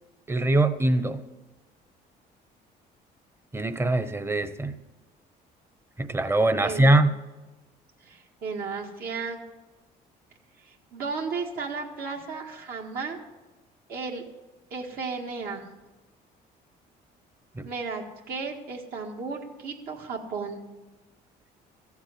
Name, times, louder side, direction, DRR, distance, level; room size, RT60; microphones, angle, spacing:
voice 1, 0.3-1.2 3.5-4.8 6.0-7.1 17.6-17.7, right 2 dB, 15° right, 11 dB, 0.9 m, -22 dB
voice 2, 6.6-7.0 8.0-9.4 10.6-13.2 13.9-14.2 14.7-15.6 17.6-20.6, right 4 dB, 65° right, -1 dB, 1.8 m, -34 dB
14.0 x 7.3 x 8.2 m, 1.1 s
cardioid pair, 110°, 17 cm